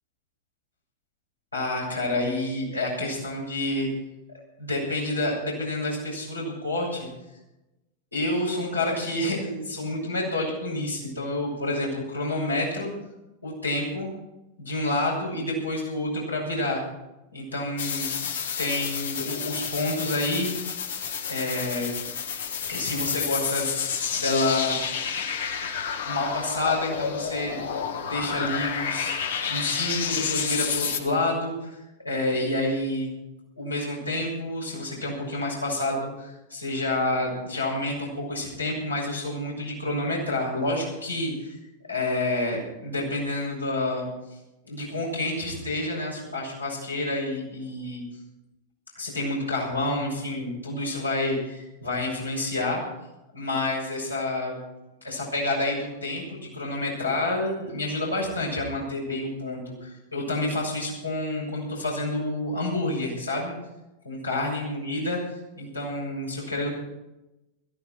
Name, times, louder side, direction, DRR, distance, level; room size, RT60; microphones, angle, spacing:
voice 1, 1.5-3.9 4.3-7.1 8.1-12.9 13.4-14.1 14.6-16.8 17.3-18.1 18.6-20.8 21.3-21.9 22.7-23.7 24.1-24.8 26.0-27.6 28.0-29.2 29.5-31.8 32.0-33.1 33.6-41.6 41.9-44.1 44.6-48.0 48.9-52.8 53.3-54.6 55.0-63.6 64.0-65.2 65.6-66.7, left 2 dB, 85° left, -3 dB, 7.2 m, -28 dB
sound 1, 17.8-31.0, left 7 dB, 65° left, 1.7 m, -30 dB
17.0 x 15.5 x 4.6 m, 0.97 s
figure-of-eight pair, 90°, 0 cm